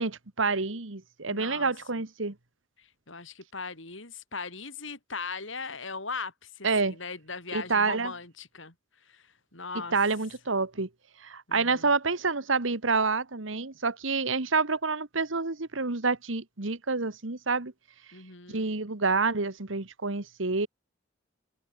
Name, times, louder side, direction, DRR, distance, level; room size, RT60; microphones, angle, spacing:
voice 1, 0.0-2.3 6.6-6.9 7.5-8.1 9.9-10.9 11.2-17.7 18.5-20.7, right 4 dB, 80° right, 1.6 m, -28 dB
voice 2, 1.3-1.7 2.8-8.7 9.0-10.0 11.5-11.9 18.1-18.7, left 4 dB, 75° left, 6.2 m, -39 dB
head